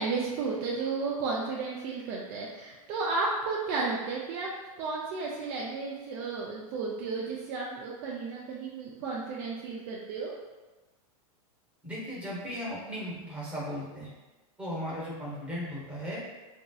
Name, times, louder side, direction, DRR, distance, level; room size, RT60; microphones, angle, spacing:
voice 1, 0.0-4.5 4.8-10.3, right 4 dB, 35° right, -3 dB, 0.3 m, -33 dB
voice 2, 11.8-14.1 14.6-16.2, equal, 5° right, -6 dB, 0.8 m, -36 dB
2.9 x 2.7 x 2.2 m, 1.2 s
supercardioid pair, 150°, 18 cm